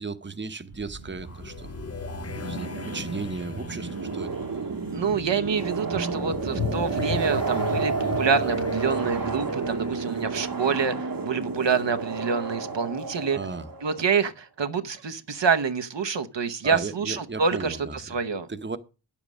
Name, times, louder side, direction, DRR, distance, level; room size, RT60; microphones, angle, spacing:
voice 1, 0.0-1.8 2.4-4.3 13.3-13.7 16.6-18.2 18.5-18.8, right 4 dB, 25° right, 0.8 m, -35 dB
sound 1, 0.7-11.4, left 6 dB, 35° left, 0.6 m, -37 dB
sound 2, 0.7-14.1, right 4 dB, 55° right, 1.0 m, -31 dB
voice 2, 4.9-13.4 13.8-18.5, right 5 dB, 80° right, 0.9 m, -27 dB
9.5 x 7.3 x 6.1 m
wide cardioid pair, 50°, 42 cm